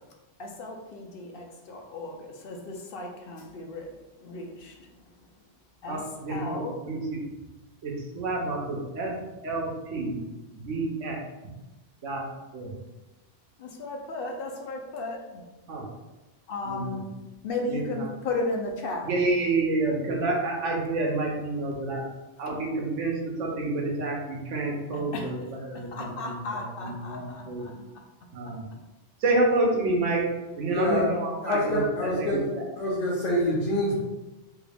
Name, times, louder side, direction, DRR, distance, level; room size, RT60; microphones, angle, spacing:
voice 1, 0.4-3.9 4.2-5.1 5.8-6.0 6.3-6.8 13.6-15.4 16.5-17.1 17.4-19.1 24.9-25.3 25.7-27.7, left 2 dB, 60° left, 2 dB, 0.7 m, -35 dB
voice 2, 5.9-7.2 7.8-9.1 9.4-10.2 10.5-11.2 12.0-12.2 12.5-12.7 15.7-15.9 16.6-17.0 17.7-18.1 19.0-22.0 22.4-27.7 28.3-28.7 29.2-30.3 30.6-32.7, right 2 dB, 85° right, -1 dB, 1.1 m, -29 dB
voice 3, 30.7-31.0 31.4-32.5 32.8-34.0, left 1 dB, 90° left, -6 dB, 1.2 m, -26 dB
3.3 x 2.4 x 3.3 m, 1.1 s
omnidirectional pair, 1.2 m